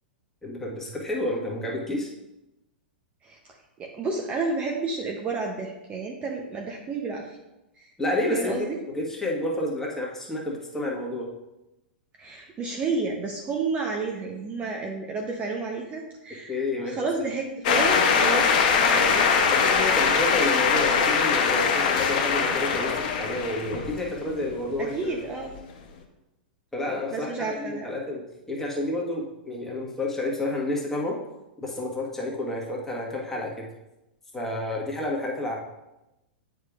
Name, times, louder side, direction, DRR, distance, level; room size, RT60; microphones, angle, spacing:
voice 1, 0.4-2.1 8.0-8.6 8.9-11.3 16.5-17.0 18.9-25.2 26.7-28.2 28.5-31.2 31.6-33.7 34.3-35.6, left 1 dB, 5° left, -3 dB, 1.5 m, -30 dB
voice 2, 3.8-7.4 7.8-7.9 8.3-8.8 12.2-16.5 16.8-18.5 18.9-19.3 24.9-25.5 27.1-28.0, right 4 dB, 25° right, 1 dB, 0.8 m, -31 dB
sound 1, 17.6-24.4, left 6 dB, 50° left, 1.0 m, -22 dB
9.1 x 5.0 x 2.5 m, 0.96 s
figure-of-eight pair, 100°, 5 cm